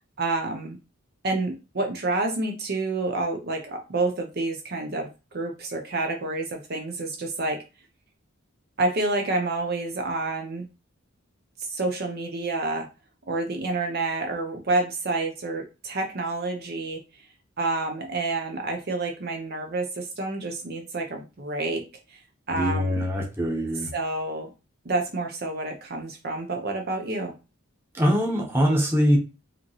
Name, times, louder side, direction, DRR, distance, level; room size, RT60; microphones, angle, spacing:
voice 1, 0.2-0.8 1.2-7.6 8.8-10.6 11.6-12.9 13.3-17.3 17.6-21.8 22.1-22.2 22.5-23.0 23.9-24.5 24.8-27.3, right 2 dB, 45° right, 3 dB, 0.7 m, -28 dB
voice 2, 22.5-23.9 27.9-29.2, equal, 10° right, -1 dB, 1.0 m, -23 dB
4.9 x 2.9 x 3.0 m, 0.30 s
head